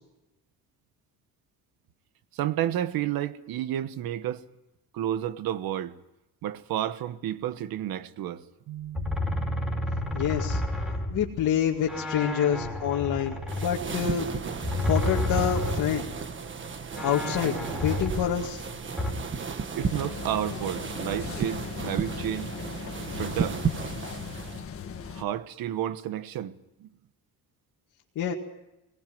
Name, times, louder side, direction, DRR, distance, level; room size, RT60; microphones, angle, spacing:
voice 1, 2.3-4.4 4.9-6.0 6.4-9.2 19.8-22.6 23.1-23.6 25.1-26.5 26.8-26.9, right 11 dB, 85° right, 1.3 m, -31 dB
sound 1, 8.9-11.6 11.9-16.1 16.5-16.6 17.0-19.1, left 1 dB, ahead, 5.1 m, -31 dB
voice 2, 10.1-10.6 11.1-14.3 14.8-16.0 17.0-18.7 28.2-28.3, left 8 dB, 60° left, 2.2 m, -27 dB
sound 2, 13.5-24.7, right 5 dB, 35° right, 1.5 m, -34 dB
sound 3, 19.8-25.2, left 7 dB, 40° left, 1.7 m, -38 dB
21.5 x 19.5 x 9.3 m
cardioid pair, 145°, 35 cm